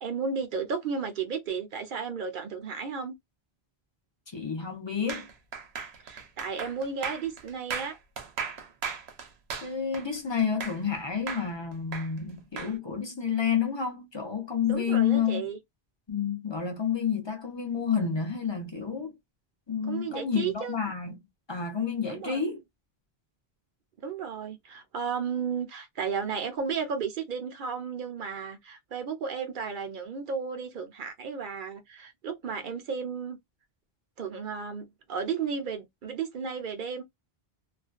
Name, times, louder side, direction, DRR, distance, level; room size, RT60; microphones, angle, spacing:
voice 1, 0.0-3.1 6.0-8.0 14.7-15.6 19.8-20.8 22.1-22.4 24.0-33.4 34.2-37.0, right 6 dB, 60° right, 0.7 m, -33 dB
voice 2, 4.3-5.3 9.6-15.4 16.1-19.1 19.7-21.2 21.5-22.6, left 7 dB, 35° left, 0.5 m, -29 dB
sound 1, 5.1-11.0 11.3-12.7, right 6 dB, 90° right, 0.9 m, -37 dB
2.4 x 2.1 x 2.4 m
omnidirectional pair, 1.1 m